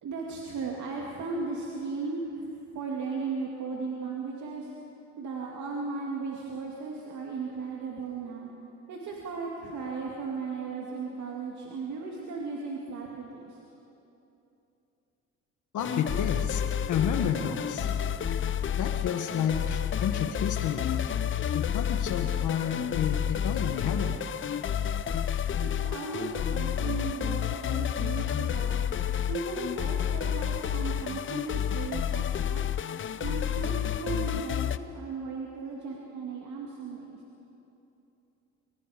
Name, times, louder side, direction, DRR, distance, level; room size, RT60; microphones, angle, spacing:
voice 1, 0.0-2.4 2.7-4.7 5.2-8.5 8.9-13.6 25.6-28.9 29.3-32.7 33.2-37.2, right 4 dB, 70° right, -2 dB, 2.4 m, -36 dB
voice 2, 15.7-16.6 16.9-17.9 18.8-21.0 21.5-24.1, left 8 dB, 80° left, 5 dB, 1.6 m, -31 dB
sound 1, 15.8-34.8, left 9 dB, 40° left, 0.6 m, -30 dB
23.5 x 23.0 x 5.1 m, 2.9 s
cardioid pair, 90°, 30 cm